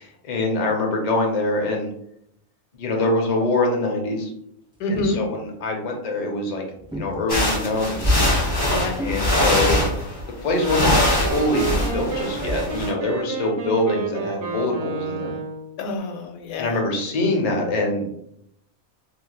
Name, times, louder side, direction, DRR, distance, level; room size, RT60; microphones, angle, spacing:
voice 1, 0.0-1.9 2.7-4.3 4.9-8.2 9.0-9.8 10.4-15.4 16.6-18.1, left 2 dB, 55° left, 1 dB, 0.4 m, -24 dB
sound 1, 4.7-5.3 6.8-7.4 9.0-9.4, equal, 5° right, 0.6 m, -33 dB
voice 2, 4.8-5.2 8.6-9.1 15.8-16.8, left 2 dB, 80° left, 4 dB, 1.0 m, -27 dB
sound 2, 7.3-10.2 10.5-12.9, left 1 dB, 25° left, 0.9 m, -22 dB
Wind instrument woodwind instrument, 10.5-15.7, right 5 dB, 70° right, 1.0 m, -30 dB
3.2 x 2.7 x 2.2 m, 0.73 s
omnidirectional pair, 1.5 m